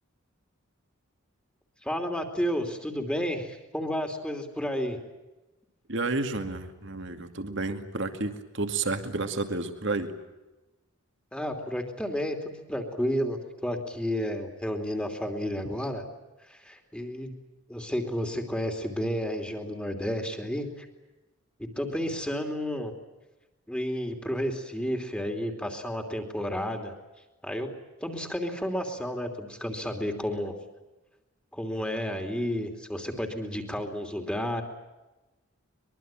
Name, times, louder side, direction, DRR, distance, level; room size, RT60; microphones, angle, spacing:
voice 1, 1.8-5.0 11.3-16.0 16.4-17.3 17.7-20.9 21.6-22.9 23.7-26.9 27.4-27.7 28.0-30.5 31.5-34.6, equal, 5° left, 3 dB, 2.9 m, -31 dB
voice 2, 5.9-10.1, right 3 dB, 55° right, 7 dB, 2.4 m, -31 dB
24.0 x 23.0 x 9.0 m, 1.1 s
head